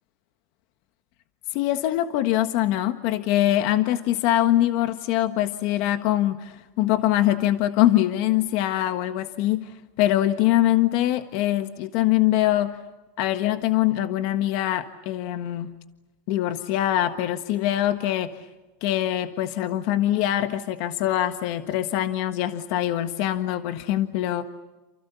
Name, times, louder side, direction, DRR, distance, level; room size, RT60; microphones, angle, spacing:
voice 1, 1.5-12.8 13.2-15.7 16.3-18.4 18.8-24.4, left 13 dB, 55° left, 9 dB, 1.4 m, -23 dB
29.0 x 28.5 x 7.0 m, 1.1 s
supercardioid pair, 140°, 0 cm